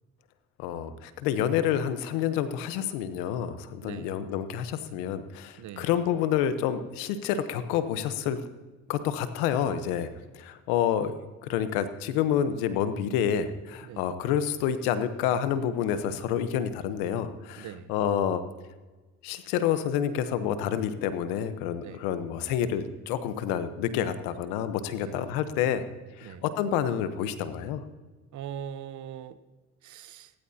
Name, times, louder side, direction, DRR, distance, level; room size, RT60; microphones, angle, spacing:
voice 1, 0.6-8.4 8.9-10.1 10.3-18.4 19.2-25.9 26.2-27.8, left 9 dB, 85° left, 11 dB, 1.1 m, -28 dB
voice 2, 5.6-5.9 13.8-14.1 17.6-17.9 21.8-22.1 24.9-25.2 26.2-26.4 28.3-29.4 29.8-30.3, right 9 dB, 60° right, 14 dB, 0.9 m, -41 dB
17.0 x 15.5 x 2.8 m, 1.3 s
supercardioid pair, 65°, 33 cm